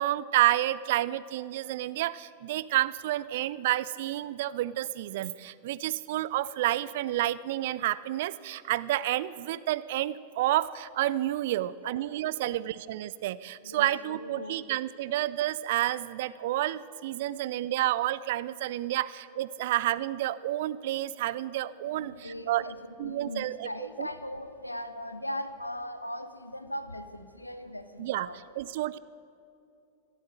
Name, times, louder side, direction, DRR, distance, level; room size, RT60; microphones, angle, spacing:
voice 1, 0.0-22.7 23.0-23.7 24.0-24.1 28.0-28.3 28.5-29.0, right 14 dB, 55° right, 18 dB, 0.3 m, -30 dB
voice 2, 11.6-11.9 12.4-12.5 13.6-14.6 21.8-28.4, left 1 dB, 85° left, 11 dB, 0.7 m, -39 dB
13.0 x 12.5 x 7.8 m, 2.6 s
figure-of-eight pair, 90°, 0 cm